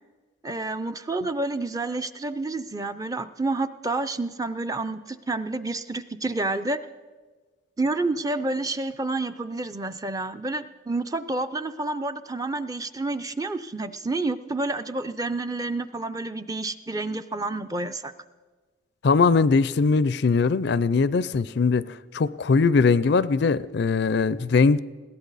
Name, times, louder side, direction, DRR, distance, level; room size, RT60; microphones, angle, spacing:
voice 1, 0.4-6.8 7.8-18.1, right 2 dB, 15° right, 10 dB, 0.4 m, -29 dB
voice 2, 19.0-24.8, left 4 dB, 55° left, 17 dB, 0.4 m, -21 dB
21.0 x 16.5 x 4.0 m, 1.4 s
head